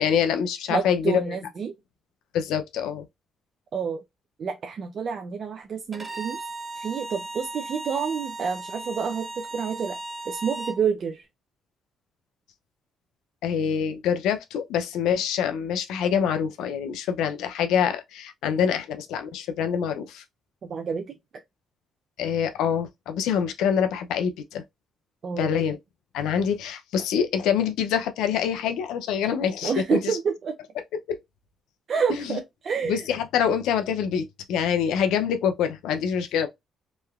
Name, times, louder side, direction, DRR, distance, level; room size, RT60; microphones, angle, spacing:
voice 1, 0.0-1.4 2.3-3.1 13.4-20.2 22.2-24.6 25.4-25.8 26.1-30.2 31.1-31.2 32.1-32.4 32.8-36.5, left 8 dB, 90° left, 0.5 m, -25 dB
voice 2, 0.7-1.7 3.7-4.0 4.4-6.4 6.8-10.0 10.3-11.2 20.7-21.1 25.2-25.6 29.6-30.6 31.9-33.0, right 6 dB, 55° right, 0.5 m, -28 dB
Bowed string instrument, 5.9-10.8, right 2 dB, 20° right, 0.9 m, -36 dB
3.1 x 2.8 x 2.3 m
cardioid pair, 90°, 0 cm